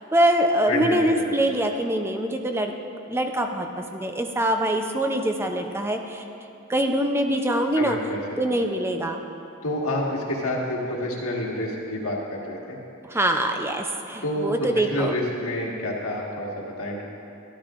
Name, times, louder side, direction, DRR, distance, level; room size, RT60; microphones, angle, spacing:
voice 1, 0.0-2.7 3.1-6.2 6.7-8.0 8.4-9.2 13.0-15.1, right 1 dB, 10° right, 4 dB, 0.5 m, -24 dB
voice 2, 0.7-1.4 7.8-8.5 9.6-12.8 14.2-17.0, left 1 dB, 75° left, -2 dB, 1.6 m, -28 dB
13.0 x 12.0 x 2.5 m, 2.7 s
head